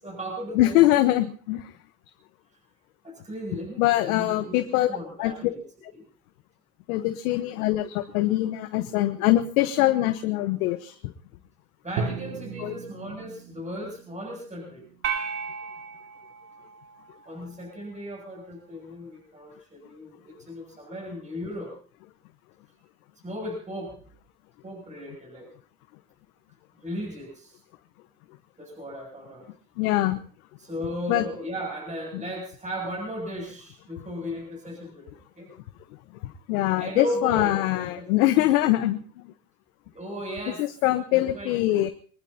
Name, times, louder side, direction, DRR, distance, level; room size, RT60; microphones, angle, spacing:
voice 1, 0.0-1.1 3.0-5.6 5.9-6.0 7.5-7.6 11.8-14.9 17.2-21.8 23.2-24.0 24.6-25.5 26.8-27.6 28.6-29.5 30.6-35.5 36.7-38.1 38.4-38.5 39.9-40.7 41.1-41.5, equal, 15° right, -1 dB, 7.8 m, -36 dB
voice 2, 0.5-1.7 3.8-5.5 5.8-5.9 6.9-11.0 12.6-12.7 29.8-30.2 31.1-31.2 36.2-39.0 40.6-41.9, left 15 dB, 70° left, 9 dB, 1.3 m, -23 dB
Drum, 12.0-16.0, right 5 dB, 65° right, 2.9 m, -37 dB
sound 1, 15.0-17.5, right 6 dB, 35° right, 2.8 m, -35 dB
24.5 x 19.5 x 2.9 m, 0.44 s
hypercardioid pair, 80°, 44 cm